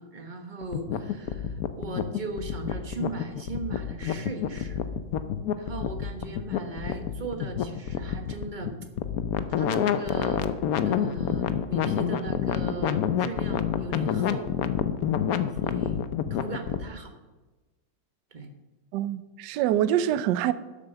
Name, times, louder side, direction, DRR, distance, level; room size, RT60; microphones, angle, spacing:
voice 1, 0.0-4.8 5.6-8.8 9.6-10.4 10.8-14.5 15.6-17.1 18.3-18.5, right 3 dB, 30° right, 1.1 m, -38 dB
sound 1, 0.6-16.9, left 9 dB, 65° left, 0.9 m, -28 dB
voice 2, 18.9-20.5, right 11 dB, 70° right, 1.1 m, -25 dB
12.0 x 7.3 x 6.7 m
omnidirectional pair, 2.1 m